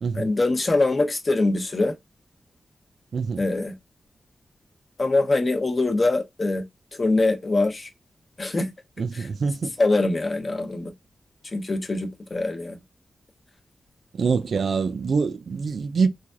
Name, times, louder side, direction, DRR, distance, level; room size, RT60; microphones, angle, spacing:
voice 1, 0.1-2.0 3.4-3.7 5.0-6.6 6.9-7.9 8.4-8.7 9.1-9.3 9.8-10.9 11.5-12.8, left 2 dB, 40° left, 0.7 m, -23 dB
voice 2, 3.1-3.4 9.0-9.7 14.1-16.1, right 5 dB, 70° right, 0.4 m, -25 dB
3.2 x 2.5 x 2.3 m
cardioid pair, 75°, 0 cm